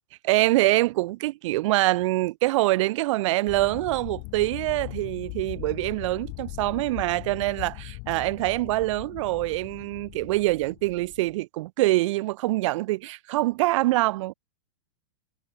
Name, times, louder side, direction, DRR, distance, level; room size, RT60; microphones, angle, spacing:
voice 1, 0.2-14.3, right 19 dB, 60° right, 0.5 m, -25 dB
sound 1, 3.5-11.3, left 40 dB or more, 45° left, 1.1 m, -40 dB
supercardioid pair, 140°, 18 cm